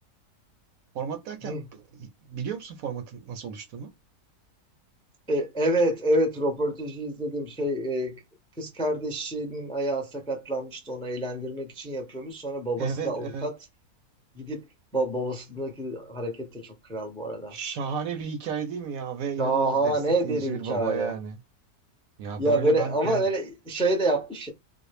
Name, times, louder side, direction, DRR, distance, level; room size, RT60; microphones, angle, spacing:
voice 1, 0.9-3.9 12.8-13.5 17.5-19.9 20.2-21.3 22.2-23.3, right 6 dB, 70° right, 1.0 m, -33 dB
voice 2, 5.3-8.2 8.6-13.5 14.3-14.6 14.9-17.6 19.4-21.2 22.4-24.5, right 1 dB, 5° left, 0.4 m, -27 dB
3.9 x 2.0 x 3.2 m
omnidirectional pair, 1.7 m